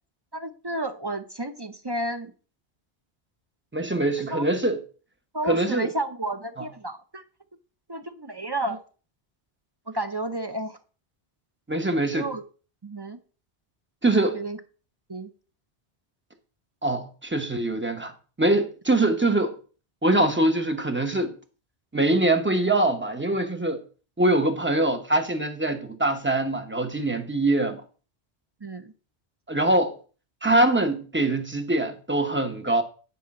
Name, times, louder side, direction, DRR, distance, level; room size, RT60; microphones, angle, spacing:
voice 1, 0.3-2.3 4.3-4.4 5.3-7.2 7.9-8.8 9.9-10.8 12.1-12.4 12.8-13.2 14.3-14.6 15.1-15.3 28.6-28.9, right 1 dB, 30° right, 0.6 m, -31 dB
voice 2, 3.7-4.8 5.5-5.9 11.7-12.3 14.0-14.4 16.8-18.1 18.4-19.6 20.0-21.3 21.9-23.8 24.2-27.8 29.5-29.9 30.4-32.8, right 2 dB, 10° right, 0.9 m, -23 dB
10.0 x 5.5 x 4.3 m
omnidirectional pair, 1.1 m